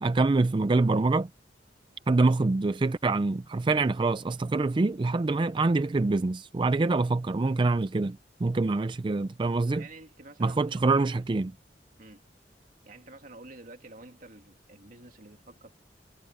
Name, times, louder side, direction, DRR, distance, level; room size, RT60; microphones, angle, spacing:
voice 1, 0.0-1.3 2.1-9.8 10.4-11.5, right 3 dB, 30° right, 0.4 m, -25 dB
voice 2, 9.7-10.9 12.0-12.2 12.8-15.8, right 2 dB, 50° right, 2.4 m, -49 dB
head